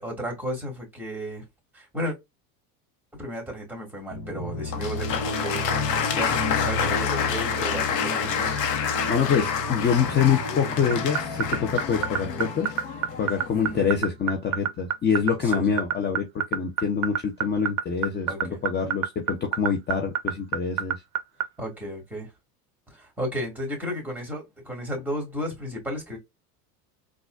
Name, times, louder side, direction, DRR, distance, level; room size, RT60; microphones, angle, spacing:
voice 1, 0.0-1.4 1.7-2.2 3.1-5.6 6.1-8.6 13.5-13.9 15.4-15.8 18.3-18.6 21.6-22.3 22.9-26.2, equal, 5° right, 2.2 m, -33 dB
sound 1, 4.1-14.3, left 2 dB, 55° left, 1.1 m, -32 dB
Applause, 4.7-13.7, left 7 dB, 80° left, 1.0 m, -29 dB
voice 2, 9.0-12.7 13.2-21.0, left 6 dB, 20° left, 0.6 m, -25 dB
sound 2, 10.9-21.4, right 11 dB, 40° right, 0.6 m, -24 dB
3.9 x 2.4 x 2.3 m
hypercardioid pair, 90°, 48 cm